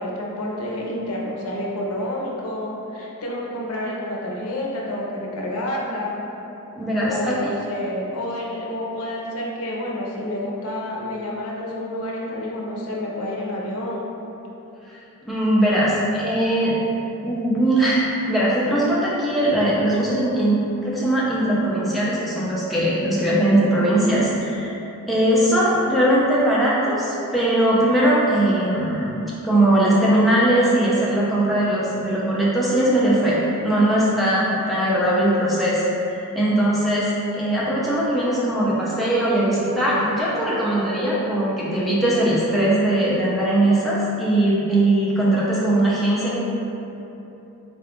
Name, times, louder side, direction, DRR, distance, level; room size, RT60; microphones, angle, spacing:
voice 1, 0.0-6.2 7.0-14.1, left 1 dB, 70° left, -3 dB, 0.6 m, -29 dB
voice 2, 6.8-7.4 15.3-16.7 17.2-18.0 18.3-20.6 20.8-24.7 25.1-46.5, right 1 dB, ahead, -8 dB, 0.5 m, -20 dB
3.8 x 2.3 x 3.5 m, 3.0 s
head